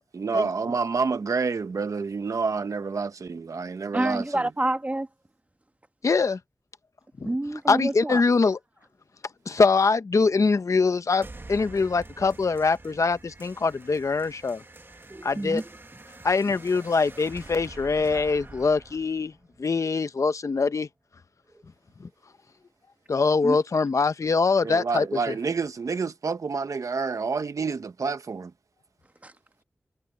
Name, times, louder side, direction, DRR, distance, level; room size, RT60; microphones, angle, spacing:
voice 1, 0.1-4.5 24.6-28.5, right 4 dB, 85° right, 1.1 m, -28 dB
voice 2, 3.9-5.1 7.2-8.2 15.1-15.6 18.1-18.2 21.5-21.6 23.4-23.6 29.2-29.3, right 1 dB, 25° right, 1.4 m, -28 dB
voice 3, 6.0-6.4 7.2-7.3 7.7-8.6 9.5-14.6 15.2-15.6 16.2-19.3 19.6-20.9 22.0-22.1 23.1-25.3, left 4 dB, 70° left, 0.9 m, -23 dB
sound 1, 11.2-20.2, right 2 dB, 45° right, 1.8 m, -46 dB
wide cardioid pair, 55°, 5 cm